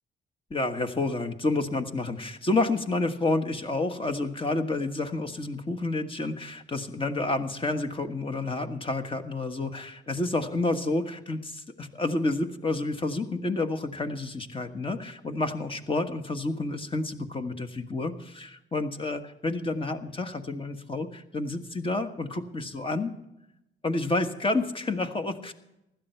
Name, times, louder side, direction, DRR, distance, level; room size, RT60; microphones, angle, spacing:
voice 1, 0.5-23.1 23.8-25.5, left 2 dB, 25° left, 7 dB, 1.4 m, -29 dB
16.0 x 12.0 x 4.5 m, 0.86 s
cardioid pair, 90°, 20 cm